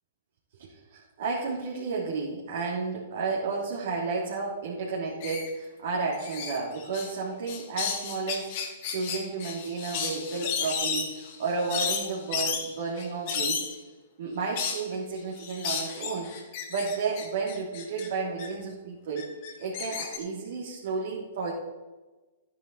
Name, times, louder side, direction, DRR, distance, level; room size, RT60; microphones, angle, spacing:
voice 1, 0.6-8.5 8.9-13.7 14.2-16.3 16.7-19.3 19.6-21.5, right 4 dB, 60° right, -5 dB, 3.4 m, -32 dB
sound 1, 5.2-5.5 6.1-7.1 7.5-13.7 14.5-14.8 15.4-18.1 18.4-18.5 19.2-20.2, left 6 dB, 45° left, 2.7 m, -33 dB
13.0 x 10.5 x 4.3 m, 1.2 s
figure-of-eight pair, 115°, 0 cm